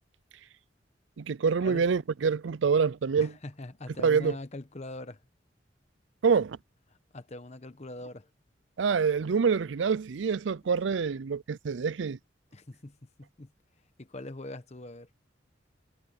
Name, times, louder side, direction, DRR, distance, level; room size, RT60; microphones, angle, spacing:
voice 1, 1.2-3.3 4.0-4.3 6.2-6.6 8.8-12.2, right 5 dB, 80° right, 0.5 m, -26 dB
voice 2, 3.2-5.2 7.1-8.3 10.7-10.8 12.5-13.5 14.0-15.1, left 2 dB, 35° left, 1.1 m, -42 dB
head